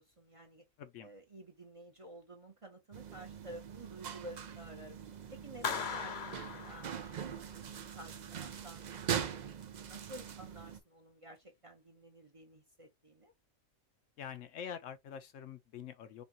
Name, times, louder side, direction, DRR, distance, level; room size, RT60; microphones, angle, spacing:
voice 1, 0.0-0.6 1.0-5.0 5.3-7.7 7.9-8.8 9.2-13.3, right 1 dB, 30° right, 0.7 m, -52 dB
voice 2, 0.8-1.1 5.6-5.8 14.2-16.2, left 8 dB, 70° left, 0.9 m, -46 dB
sound 1, 2.9-10.8, right 8 dB, 70° right, 0.4 m, -42 dB
Clapping, 5.6-7.5, left 6 dB, 50° left, 0.7 m, -39 dB
5.3 x 2.4 x 2.7 m
omnidirectional pair, 1.4 m